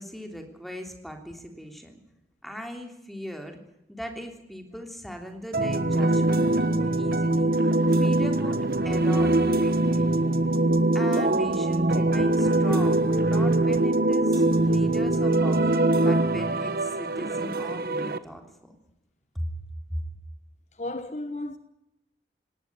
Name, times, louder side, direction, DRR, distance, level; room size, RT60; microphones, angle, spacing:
voice 1, 0.0-2.0 2.4-3.6 3.9-10.1 10.9-18.7 19.3-19.5 19.9-20.0, equal, ahead, 3.3 m, -39 dB
sound 1, 5.5-18.2, right 2 dB, 55° right, 1.3 m, -23 dB
voice 2, 20.8-21.6, left 1 dB, 40° left, 1.1 m, -33 dB
19.5 x 18.0 x 9.7 m
head